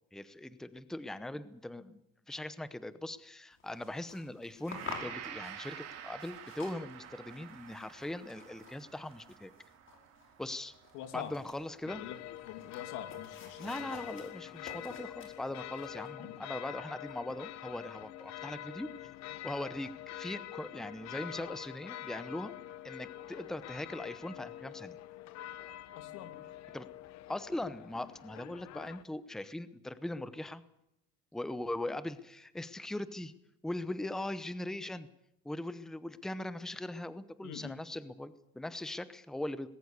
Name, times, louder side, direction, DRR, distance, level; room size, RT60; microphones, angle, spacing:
voice 1, 0.1-2.0 2.3-9.5 10.4-10.7 11.1-12.1 13.6-18.9 19.4-19.9 20.2-22.5 22.8-25.0 26.7-26.9 27.3-30.6 31.3-33.3 33.6-35.1 35.4-39.7, left 1 dB, ahead, 14 dB, 0.8 m, -40 dB
sound 1, 3.5-16.1, left 5 dB, 40° left, 5.1 m, -51 dB
Gong, 4.7-12.7, right 9 dB, 50° right, 3.1 m, -49 dB
voice 2, 10.9-11.3 12.0-12.2 12.4-13.9 16.2-16.4 26.0-26.4 37.4-37.8, left 11 dB, 90° left, 8 dB, 2.7 m, -44 dB
sound 2, 11.9-29.0, left 13 dB, 60° left, 1.1 m, -46 dB
20.0 x 18.0 x 8.2 m, 0.82 s
cardioid pair, 150°, 31 cm